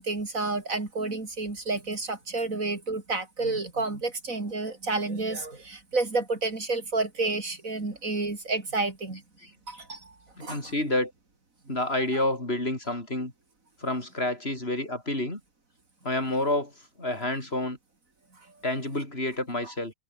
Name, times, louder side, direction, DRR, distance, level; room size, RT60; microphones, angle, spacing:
voice 1, 0.0-9.2 9.7-10.1 10.4-10.7, right 3 dB, 80° right, 4.2 m, -30 dB
voice 2, 10.4-11.1 11.7-13.3 13.8-15.4 16.0-16.7 17.0-17.8 18.6-19.9, left 1 dB, 45° left, 6.0 m, -29 dB
omnidirectional pair, 1.4 m